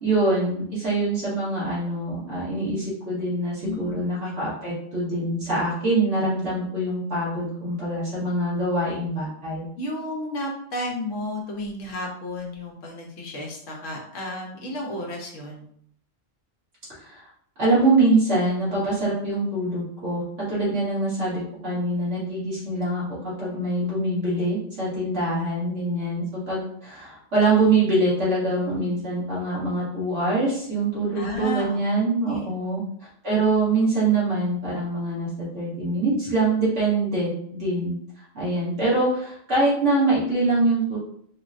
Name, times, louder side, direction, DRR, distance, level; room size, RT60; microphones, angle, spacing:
voice 1, 0.0-9.7 17.0-17.2 17.6-32.8 33.2-41.0, right 2 dB, 70° right, -9 dB, 1.7 m, -24 dB
voice 2, 3.6-3.9 4.2-4.4 9.8-15.7 31.1-31.8 32.3-32.5, left 1 dB, 80° left, 0 dB, 1.2 m, -32 dB
3.7 x 2.1 x 2.5 m, 0.64 s
omnidirectional pair, 1.3 m